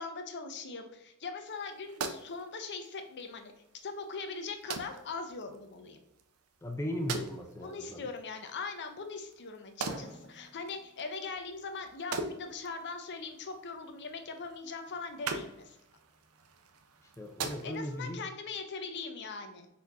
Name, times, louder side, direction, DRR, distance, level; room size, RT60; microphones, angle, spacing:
voice 1, 0.0-3.5 3.8-6.0 7.6-15.8 17.6-19.7, left 4 dB, 50° left, 6 dB, 0.6 m, -41 dB
sound 1, 1.5-18.1, right 4 dB, 70° right, 0.5 m, -44 dB
voice 2, 6.6-8.0 17.2-18.2, left 1 dB, 10° left, 2 dB, 0.4 m, -37 dB
Drum, 9.9-11.8, right 1 dB, 20° right, 1.2 m, -50 dB
4.2 x 2.7 x 4.6 m, 0.84 s
head